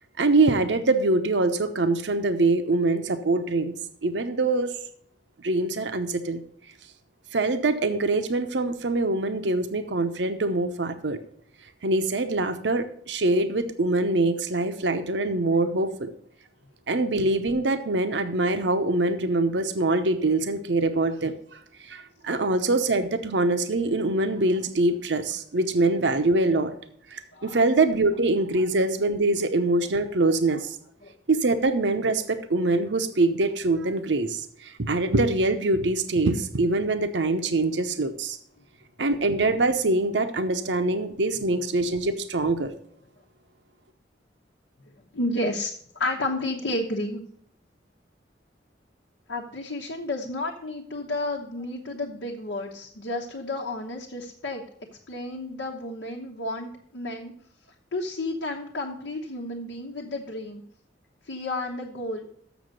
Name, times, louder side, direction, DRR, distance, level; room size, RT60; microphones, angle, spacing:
voice 1, 0.2-3.8 4.0-4.7 5.4-6.4 7.3-11.2 11.8-16.1 16.9-21.4 21.9-26.7 27.1-30.8 31.3-38.4 39.0-42.7, right 2 dB, 75° right, 9 dB, 0.8 m, -24 dB
voice 2, 45.1-47.2 49.3-54.6 55.1-57.3 57.9-60.6 61.3-62.3, left 2 dB, 90° left, -1 dB, 1.0 m, -31 dB
7.1 x 6.8 x 6.3 m, 0.64 s
head